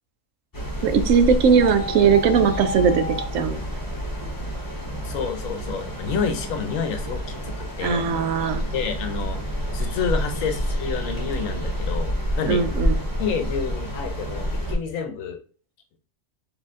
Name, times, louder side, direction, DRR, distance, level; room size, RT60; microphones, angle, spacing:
sound 1, 0.5-14.7, equal, 20° left, 0.8 m, -29 dB
voice 1, 0.8-3.6 7.8-8.6 12.5-12.9, right 6 dB, 80° right, 9 dB, 1.0 m, -19 dB
sound 2, 1.6-3.2, left 4 dB, 40° right, 0.7 m, -32 dB
voice 2, 5.0-8.1 8.7-9.4 9.7-12.1 12.4-12.6 13.2-15.4, left 6 dB, 85° left, 7 dB, 1.1 m, -29 dB
4.3 x 2.8 x 3.6 m, 0.41 s
omnidirectional pair, 1.3 m